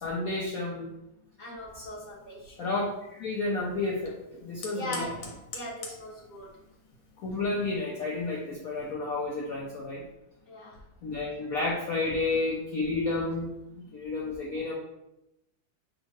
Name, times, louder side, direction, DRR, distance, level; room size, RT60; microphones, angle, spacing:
voice 1, 0.0-0.9 2.6-5.0 7.2-10.0 11.0-13.5 13.8-14.7, left 3 dB, 65° left, -3 dB, 0.9 m, -31 dB
voice 2, 1.4-2.6 4.7-6.5 10.5-10.8, left 1 dB, 15° right, -8 dB, 1.0 m, -40 dB
Fire, 1.7-8.9, left 3 dB, 90° left, 1.7 m, -48 dB
6.2 x 2.7 x 3.0 m, 0.87 s
omnidirectional pair, 2.1 m